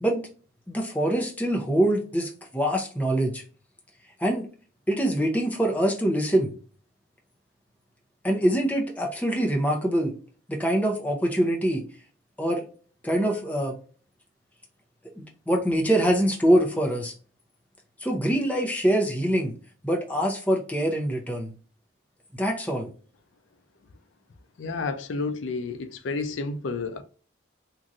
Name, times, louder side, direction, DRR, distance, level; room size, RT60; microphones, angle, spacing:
voice 1, 0.7-3.4 4.2-4.5 4.9-6.5 8.2-10.1 10.5-11.8 12.4-12.6 13.0-13.7 15.2-17.1 18.0-19.5 19.8-21.5 22.4-22.9, right 1 dB, 10° left, 0.6 m, -24 dB
voice 2, 24.6-27.0, left 3 dB, 80° left, 0.4 m, -30 dB
3.0 x 2.5 x 2.5 m
head